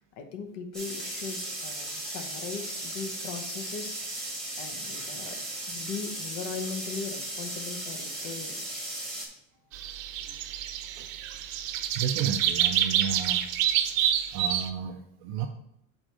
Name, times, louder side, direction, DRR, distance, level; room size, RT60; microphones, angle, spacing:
voice 1, 0.0-4.3 4.6-5.4 5.7-8.6, left 5 dB, 50° left, 6 dB, 1.0 m, -39 dB
sound 1, 0.7-9.2, right 1 dB, ahead, 1.5 m, -36 dB
sound 2, 9.7-14.7, right 11 dB, 85° right, 0.8 m, -28 dB
voice 2, 12.0-13.4 14.3-15.5, right 8 dB, 35° right, 5 dB, 0.4 m, -32 dB
5.1 x 4.4 x 6.0 m, 0.77 s
supercardioid pair, 165°, 38 cm